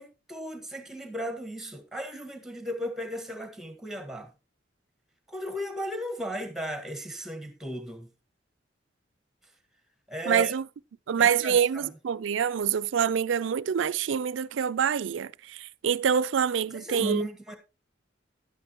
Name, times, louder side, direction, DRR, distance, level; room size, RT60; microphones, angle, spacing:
voice 1, 0.0-4.3 5.3-8.1 10.1-10.5 11.2-11.9 16.7-17.6, equal, ahead, 1.5 m, -35 dB
voice 2, 10.3-10.7 11.1-17.3, right 7 dB, 85° right, 0.4 m, -26 dB
11.5 x 9.6 x 2.9 m
head